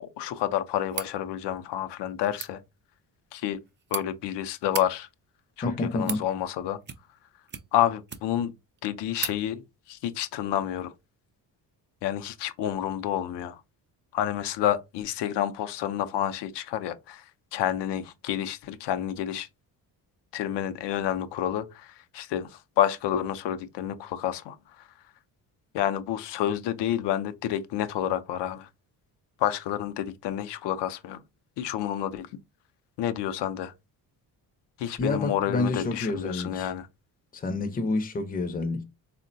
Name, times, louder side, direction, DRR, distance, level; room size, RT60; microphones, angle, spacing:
voice 1, 0.0-2.6 3.3-3.6 3.9-5.1 5.6-6.8 7.7-8.5 8.8-9.6 9.9-10.9 12.0-13.6 14.1-19.5 20.3-24.9 25.7-28.7 29.4-31.2 31.6-32.3 33.0-33.7 34.8-36.9, left 11 dB, 70° left, 0.5 m, -29 dB
sound 1, 0.9-1.1 2.2-2.5 3.5-4.0 4.6-4.9 5.7-6.3 6.8-7.2 7.5-8.5 8.8-8.9 9.2-9.4, right 7 dB, 30° right, 0.4 m, -36 dB
voice 2, 5.6-6.3 35.0-36.7 37.3-38.8, left 2 dB, 20° left, 0.5 m, -28 dB
3.6 x 2.1 x 2.5 m
cardioid pair, 90°, 43 cm